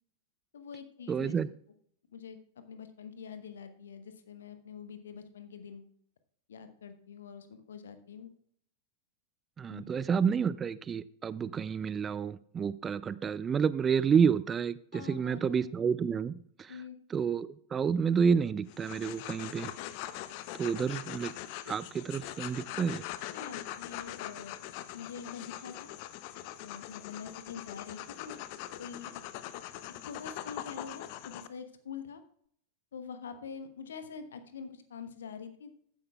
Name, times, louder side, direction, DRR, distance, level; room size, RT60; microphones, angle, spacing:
voice 1, 0.5-1.3 2.1-5.9 6.5-8.3 9.7-9.8 14.9-15.6 16.7-17.0 23.3-24.6 24.9-25.9 26.6-28.4 28.8-29.2 30.0-32.2 32.9-35.7, left 6 dB, 65° left, 1.1 m, -45 dB
voice 2, 1.1-1.5 9.6-16.7 17.1-19.7 20.6-21.3 21.7-23.0, right 6 dB, 20° right, 0.4 m, -29 dB
sound 1, 18.7-31.5, left 13 dB, 45° left, 0.6 m, -42 dB
14.5 x 10.0 x 2.3 m
figure-of-eight pair, 90°, 0 cm